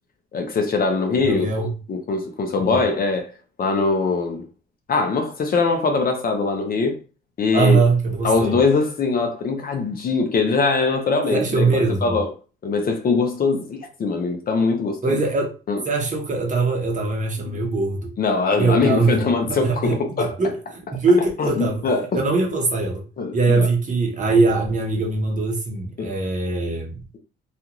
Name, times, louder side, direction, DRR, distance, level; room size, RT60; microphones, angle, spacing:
voice 1, 0.3-3.3 3.6-4.4 4.9-7.0 7.4-7.8 8.2-11.7 12.0-12.3 12.6-15.2 15.7-15.8 18.2-20.4 21.4-22.1 23.2-23.7 26.0-26.1, left 4 dB, 50° left, 0.6 m, -22 dB
voice 2, 1.2-1.7 2.6-2.8 7.5-8.6 11.3-12.2 15.0-15.5 15.8-18.1 18.6-20.6 20.9-21.8 22.1-23.0 23.3-27.0, right 3 dB, 40° right, 1.0 m, -21 dB
2.4 x 2.4 x 2.9 m
cardioid pair, 90°, 20 cm